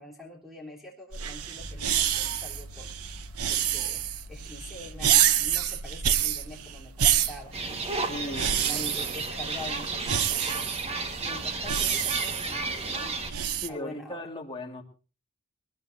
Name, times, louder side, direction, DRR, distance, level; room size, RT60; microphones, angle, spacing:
voice 1, 0.0-2.9 3.2-10.7 11.2-13.2 13.7-14.3, left 2 dB, ahead, -1 dB, 3.6 m, -45 dB
sound 1, 1.1-13.7, right 10 dB, 80° right, 0.9 m, -28 dB
sound 2, 1.6-11.7, equal, 40° left, 2.3 m, -48 dB
sound 3, 7.5-13.3, right 3 dB, 25° right, 1.6 m, -32 dB
voice 2, 8.0-8.9 13.6-14.8, left 1 dB, 20° left, 1 dB, 1.9 m, -38 dB
21.5 x 19.5 x 2.7 m, 0.35 s
head